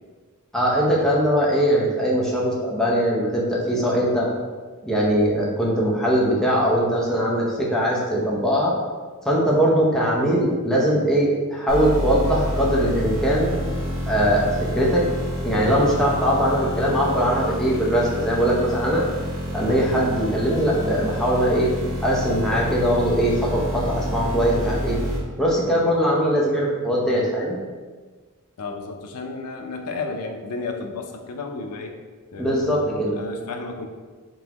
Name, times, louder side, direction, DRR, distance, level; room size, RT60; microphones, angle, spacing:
voice 1, 0.5-4.3 4.8-8.7 9.2-13.5 14.1-14.5 14.7-15.0 15.4-19.0 19.5-21.7 22.0-25.0 25.4-27.5 32.4-33.1, equal, 5° left, -5 dB, 0.7 m, -21 dB
sound 1, 11.7-25.2, equal, 65° right, 1.2 m, -28 dB
voice 2, 28.6-32.0 32.3-33.8, left 3 dB, 85° left, 4 dB, 0.5 m, -32 dB
3.8 x 3.5 x 2.9 m, 1.4 s
head